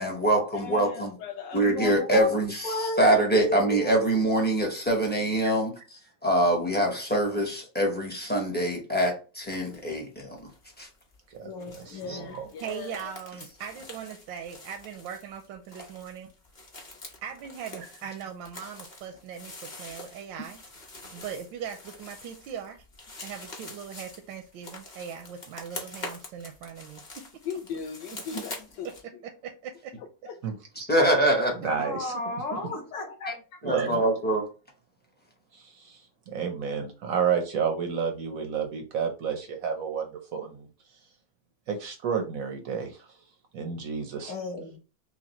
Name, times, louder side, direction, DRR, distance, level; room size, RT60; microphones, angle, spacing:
voice 1, 0.0-1.1 1.5-5.7 6.2-10.5 10.8-10.9 12.1-12.2 30.9-31.5 33.3-33.4 33.6-34.5, right 1 dB, 15° left, 0.4 m, -24 dB
voice 2, 0.5-2.0 11.6-13.1 16.9-17.0 27.4-28.9 30.0-30.4, left 6 dB, 75° left, 1.2 m, -39 dB
voice 3, 1.5-2.3 2.6-3.9 11.4-12.4 31.8-33.4 44.3-44.8, left 1 dB, 50° left, 1.1 m, -34 dB
sound 1, 9.4-9.9 10.2-29.0, left 2 dB, 35° left, 0.8 m, -45 dB
voice 4, 11.3-12.5 30.4-30.5 30.8-30.9 31.6-32.1 33.6-34.0 35.5-40.7 41.7-43.2 43.5-44.3, right 6 dB, 70° right, 0.8 m, -31 dB
voice 5, 12.6-16.3 17.2-20.6 21.1-22.8 23.2-27.3 29.4-29.9 32.5-32.8, right 8 dB, 85° right, 1.3 m, -40 dB
5.7 x 2.2 x 2.9 m
omnidirectional pair, 2.0 m